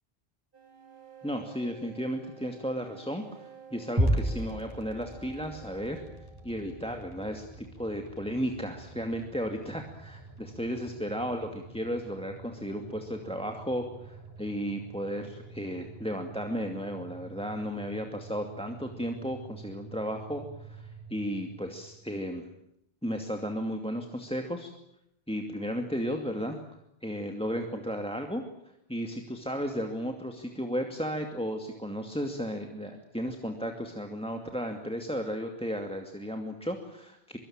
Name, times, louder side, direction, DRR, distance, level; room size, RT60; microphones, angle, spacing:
sound 1, 0.5-7.0, right 6 dB, 60° right, 4.0 m, -52 dB
voice 1, 1.2-6.0 6.4-22.5 23.0-24.7 25.3-26.6 27.0-28.4 28.9-37.4, equal, 5° left, 5 dB, 2.4 m, -34 dB
sound 2, 4.0-22.2, right 1 dB, 20° right, 6.2 m, -39 dB
24.5 x 24.0 x 8.9 m, 0.77 s
omnidirectional pair, 1.0 m